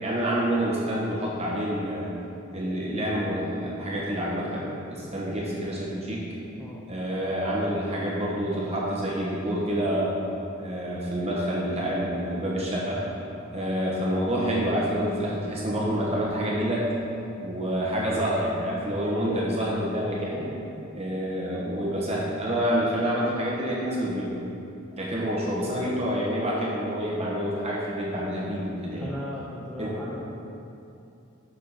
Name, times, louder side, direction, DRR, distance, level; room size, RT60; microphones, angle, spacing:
voice 1, 0.0-2.1 2.5-6.3 6.9-10.1 10.6-13.0 13.5-16.9 17.4-20.5 20.9-24.3 25.0-29.1 29.8-30.0, equal, 30° right, -5 dB, 1.4 m, -27 dB
voice 2, 29.0-30.2, left 1 dB, ahead, -6 dB, 0.6 m, -37 dB
6.5 x 4.8 x 5.8 m, 2.7 s
head